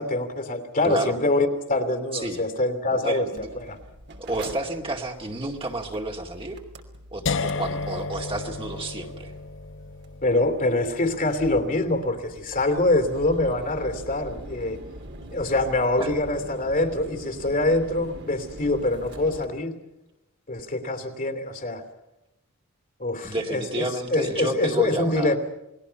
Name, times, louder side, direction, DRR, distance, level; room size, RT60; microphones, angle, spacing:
voice 1, 0.0-3.3 3.5-3.8 10.2-14.8 15.3-19.7 20.5-21.8 23.0-25.4, left 2 dB, 40° left, 7 dB, 2.8 m, -25 dB
voice 2, 2.9-3.5 4.2-6.6 7.1-9.3 16.0-16.1 23.2-25.4, right 2 dB, 25° right, 1 dB, 2.3 m, -30 dB
Mechanical fan, 3.4-19.5, right 1 dB, 55° right, 2.9 m, -43 dB
sound 1, 7.3-13.2, left 4 dB, 60° left, 0.9 m, -34 dB
29.0 x 20.5 x 5.8 m, 0.94 s
head